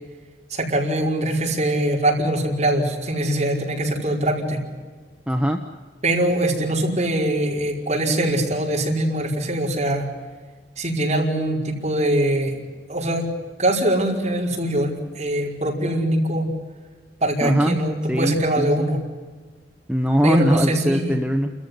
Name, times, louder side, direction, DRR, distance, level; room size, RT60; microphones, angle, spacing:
voice 1, 0.5-4.6 6.0-10.1 10.8-12.5 12.9-13.3 13.6-16.5 17.2-19.0 20.2-21.1, right 1 dB, 40° right, -1 dB, 5.1 m, -22 dB
voice 2, 5.3-5.6 17.4-17.8 18.1-18.9 19.9-21.5, equal, 5° right, 3 dB, 1.1 m, -21 dB
29.5 x 14.5 x 9.9 m, 1.4 s
head